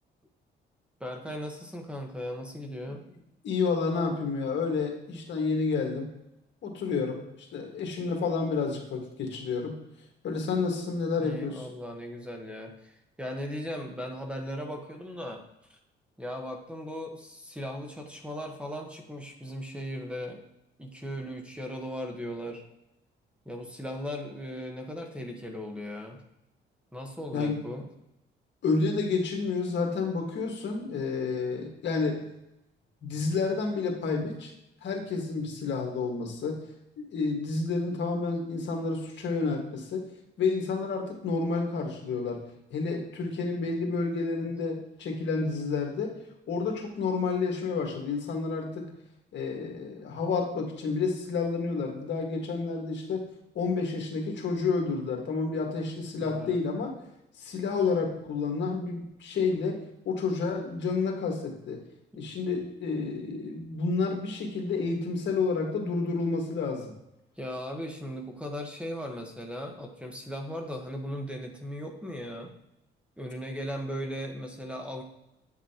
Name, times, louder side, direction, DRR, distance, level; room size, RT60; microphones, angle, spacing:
voice 1, 1.0-3.0 11.2-15.4 15.7-15.8 16.2-20.4 20.8-22.6 23.4-26.2 26.9-27.9 56.2-56.6 67.4-72.5 73.2-75.0, equal, 5° right, 2 dB, 1.2 m, -37 dB
voice 2, 3.4-6.1 6.6-7.2 7.5-9.8 10.2-11.7 27.3-27.6 28.6-32.2 33.0-34.5 34.8-36.6 37.0-40.0 40.4-42.4 42.7-46.1 46.5-48.9 49.3-53.2 53.6-57.0 57.4-59.8 60.1-61.8 62.2-66.9, left 4 dB, 65° left, 1 dB, 1.7 m, -30 dB
8.9 x 5.9 x 2.9 m, 0.85 s
cardioid pair, 90°, 20 cm